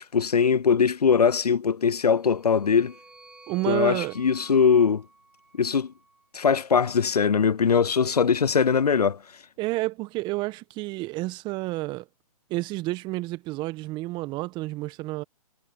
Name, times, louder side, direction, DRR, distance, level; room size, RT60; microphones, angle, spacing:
voice 1, 0.1-2.9 3.7-5.0 5.6-5.9 6.3-9.2, left 6 dB, 85° left, 0.6 m, -21 dB
sound 1, 1.9-6.3, right 3 dB, 5° right, 3.9 m, -51 dB
voice 2, 3.5-4.2 9.6-12.0 12.5-15.2, right 20 dB, 25° right, 1.6 m, -30 dB
figure-of-eight pair, 130°, 19 cm